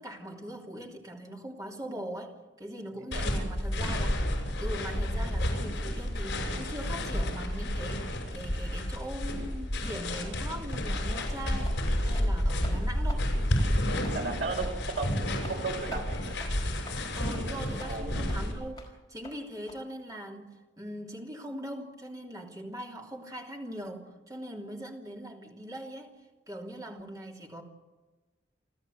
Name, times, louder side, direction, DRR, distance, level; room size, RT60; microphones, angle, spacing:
voice 1, 0.0-4.3 4.6-13.3 17.2-26.2 26.5-27.6, equal, 20° right, 0 dB, 3.1 m, -41 dB
voice 2, 2.9-3.3 13.8-15.2 15.5-16.3 17.4-18.1, right 3 dB, 70° right, 1 dB, 5.7 m, -36 dB
sound 1, 3.1-18.5, left 1 dB, 65° left, 6.4 m, -30 dB
sound 2, 10.7-10.9 11.2-11.4 11.6-11.8 12.1-12.3 12.6-12.8 13.1-13.2 13.6-13.7 14.0-14.2 14.5-14.6 15.0-15.1 15.4-15.6 15.9-16.1 16.4-16.5 16.8-17.0 17.3-17.4 17.8-17.9 18.3-18.4 18.8-18.9 19.2-19.4 19.7-19.8, left 2 dB, 20° left, 4.8 m, -46 dB
29.5 x 13.0 x 8.1 m, 1.2 s
head